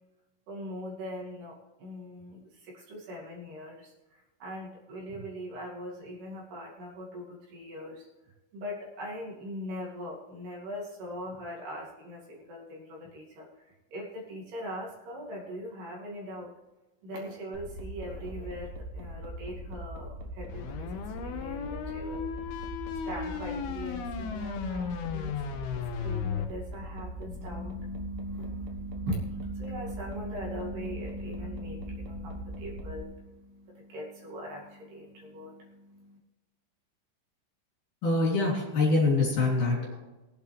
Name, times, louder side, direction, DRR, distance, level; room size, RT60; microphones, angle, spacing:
voice 1, 0.5-8.1 8.5-16.5 17.0-22.2 23.0-25.4 25.7-36.2, equal, 60° right, -3 dB, 4.2 m, -40 dB
sound 1, 17.5-33.0, right 1 dB, 80° right, 1.5 m, -41 dB
sound 2, 20.5-26.5, left 7 dB, 75° left, 2.3 m, -35 dB
voice 2, 38.0-39.9, left 3 dB, 45° left, -3 dB, 4.3 m, -25 dB
21.0 x 8.4 x 3.4 m, 1.1 s
omnidirectional pair, 5.5 m